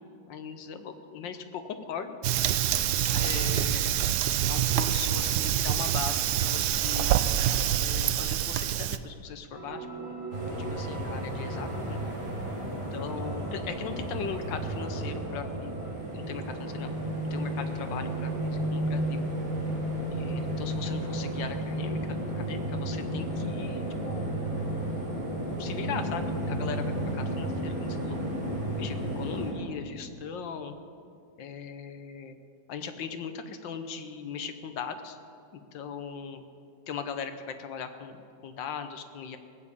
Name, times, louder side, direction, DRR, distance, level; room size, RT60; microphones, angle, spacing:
voice 1, 0.3-2.1 3.1-4.0 4.5-7.1 7.8-10.2 10.5-12.0 12.9-15.8 16.1-16.9 17.3-19.3 20.1-24.3 25.6-28.2 28.8-30.8 31.4-32.4 32.7-35.2 35.7-36.4 36.9-39.4, left 6 dB, 70° left, 9 dB, 1.5 m, -39 dB
Fire, 2.2-9.0, right 11 dB, 75° right, 1.0 m, -26 dB
sound 1, 9.5-15.9, right 2 dB, 10° right, 0.9 m, -43 dB
sound 2, 10.3-29.5, right 1 dB, 45° right, 4.7 m, -32 dB
18.5 x 7.3 x 8.3 m, 2.4 s
omnidirectional pair, 2.1 m